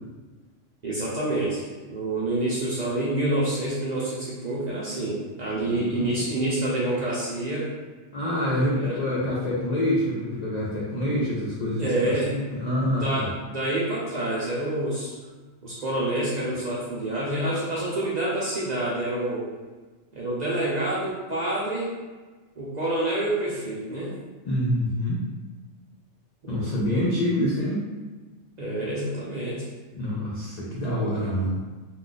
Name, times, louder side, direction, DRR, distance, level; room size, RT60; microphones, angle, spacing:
voice 1, 0.8-7.7 8.7-9.0 11.8-12.3 13.0-15.1 15.6-19.5 20.1-21.9 22.6-24.1 26.4-26.6 28.6-29.7, right 1 dB, 50° right, -7 dB, 0.5 m, -27 dB
voice 2, 5.8-6.2 8.1-13.3 24.5-25.2 26.5-27.8 29.9-31.6, equal, 60° left, -6 dB, 0.4 m, -26 dB
2.4 x 2.2 x 3.8 m, 1.3 s
omnidirectional pair, 1.3 m